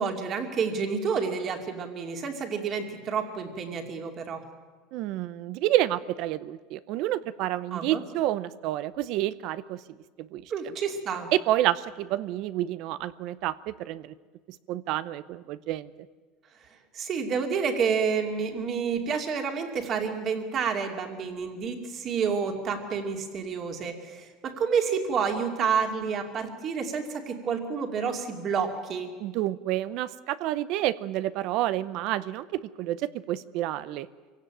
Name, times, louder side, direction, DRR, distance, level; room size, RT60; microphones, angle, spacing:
voice 1, 0.0-4.4 7.7-8.0 10.5-11.3 16.9-29.1, right 6 dB, 35° right, 4 dB, 2.6 m, -29 dB
voice 2, 4.9-9.8 10.2-10.4 11.3-14.1 14.7-15.9 29.2-34.1, right 14 dB, 55° right, 16 dB, 0.6 m, -29 dB
24.5 x 16.5 x 9.0 m, 1.4 s
cardioid pair, 155°, 0 cm